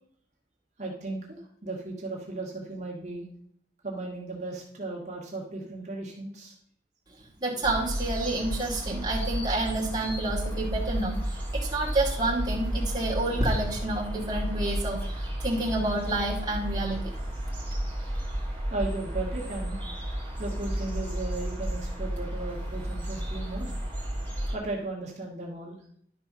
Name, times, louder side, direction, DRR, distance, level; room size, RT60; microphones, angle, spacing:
voice 1, 0.8-3.2 3.8-6.5 18.7-19.8 20.4-23.7 24.5-25.8, right 2 dB, 40° right, -3 dB, 2.0 m, -36 dB
voice 2, 7.4-17.1, right 2 dB, 20° right, -4 dB, 2.3 m, -29 dB
sound 1, 7.6-24.6, equal, 10° left, 2.7 m, -32 dB
12.0 x 4.6 x 5.6 m, 0.65 s
head